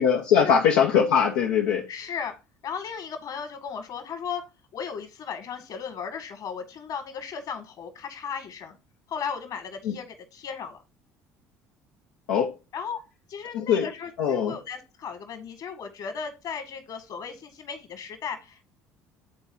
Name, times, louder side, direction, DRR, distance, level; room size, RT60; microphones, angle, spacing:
voice 1, 0.0-1.9 9.8-9.9 12.3-12.5 13.5-13.9 14.2-14.5, left 7 dB, 80° left, 0.9 m, -21 dB
voice 2, 1.9-2.3 2.6-4.4 4.7-8.8 9.1-10.8 12.7-13.0 13.3-18.7, left 6 dB, 55° left, 1.9 m, -36 dB
10.5 x 4.0 x 2.7 m
hypercardioid pair, 70°, 8 cm